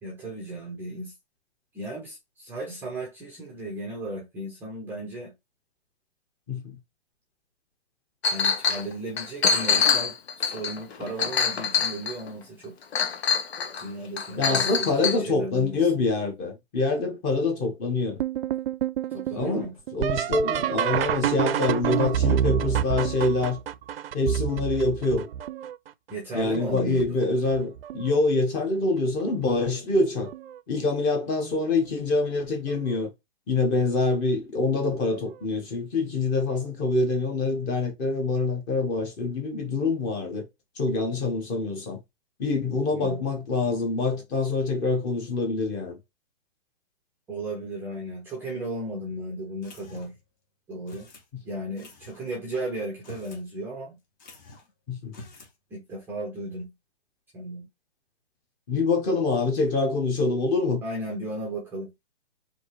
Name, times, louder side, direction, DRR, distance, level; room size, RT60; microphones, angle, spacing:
voice 1, 0.0-1.1 1.7-5.3 8.3-12.7 13.8-16.0 19.1-19.8 26.1-27.2 42.9-43.2 47.3-50.1 50.7-51.1 51.4-54.0 55.7-56.7 57.3-57.7 60.8-61.9, right 1 dB, 5° right, 0.5 m, -35 dB
Chink clink, 8.2-8.8 9.2-12.3 12.9-13.8 14.2-15.2, left 6 dB, 75° left, 1.0 m, -25 dB
voice 2, 14.4-18.2 19.3-23.6 24.1-25.3 26.3-30.3 30.7-33.1 33.5-40.5 40.8-42.0 42.4-46.0 54.9-55.2 58.7-60.8, left 3 dB, 20° left, 1.1 m, -25 dB
sound 1, 18.2-25.9 26.5-27.1 27.5-28.2 29.4-29.5 30.3-30.6 32.7-32.9 35.2-35.3, right 10 dB, 65° right, 0.5 m, -28 dB
sound 2, 49.6-50.3 50.9-51.3 51.8-52.2 52.9-53.5 53.7-53.8 54.2-54.7 55.1-55.6, left 3 dB, 45° left, 1.8 m, -47 dB
4.3 x 2.8 x 3.1 m
hypercardioid pair, 150°, 32 cm